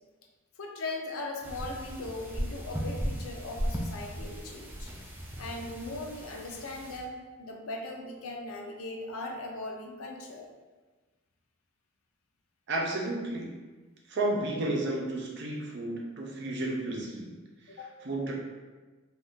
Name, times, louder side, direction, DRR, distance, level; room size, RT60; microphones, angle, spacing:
voice 1, 0.6-4.9 5.4-10.5 17.7-17.9, left 2 dB, 85° left, 2 dB, 0.5 m, -39 dB
sound 1, 1.4-7.0, equal, 10° right, 0.3 m, -37 dB
voice 2, 12.7-13.5 14.1-17.3 18.0-18.3, right 2 dB, 55° right, -2 dB, 0.6 m, -32 dB
2.6 x 2.3 x 3.5 m, 1.3 s
head